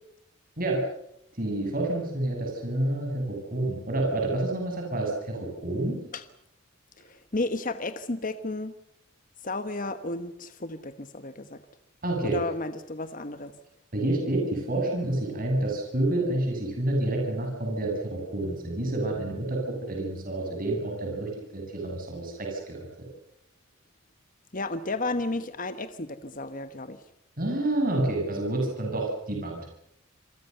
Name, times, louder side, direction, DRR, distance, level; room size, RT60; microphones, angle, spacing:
voice 1, 1.3-6.0 12.0-12.4 13.9-22.9 27.4-29.6, right 1 dB, 40° right, 1 dB, 7.8 m, -28 dB
voice 2, 7.0-8.7 9.4-11.6 12.2-13.5 24.5-27.0, left 2 dB, 40° left, 10 dB, 1.2 m, -33 dB
28.0 x 23.5 x 6.8 m, 0.77 s
head